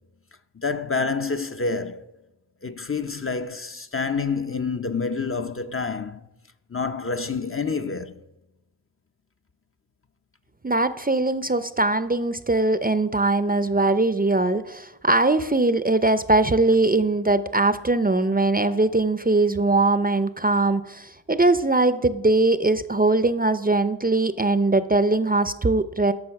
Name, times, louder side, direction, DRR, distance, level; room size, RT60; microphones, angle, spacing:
voice 1, 0.6-2.1 2.6-6.3 6.7-8.2, left 4 dB, 30° left, 0.6 m, -28 dB
voice 2, 10.6-26.1, right 2 dB, 20° right, 0.6 m, -21 dB
12.0 x 6.2 x 5.8 m
cardioid pair, 50°, 42 cm